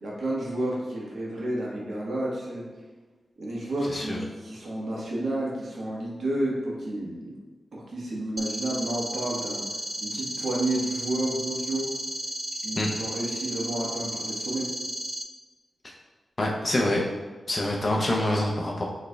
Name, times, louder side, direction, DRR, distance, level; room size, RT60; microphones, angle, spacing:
voice 1, 0.0-2.6 3.4-7.3 7.7-9.6 10.0-11.9 12.6-14.7, right 1 dB, 70° right, -4 dB, 1.2 m, -31 dB
sound 1, 8.4-15.2, right 1 dB, 15° right, 0.4 m, -34 dB
voice 2, 16.4-17.0 17.5-18.8, left 1 dB, 35° left, -2 dB, 0.7 m, -25 dB
6.3 x 3.2 x 2.3 m, 1.3 s
cardioid pair, 75°, 0 cm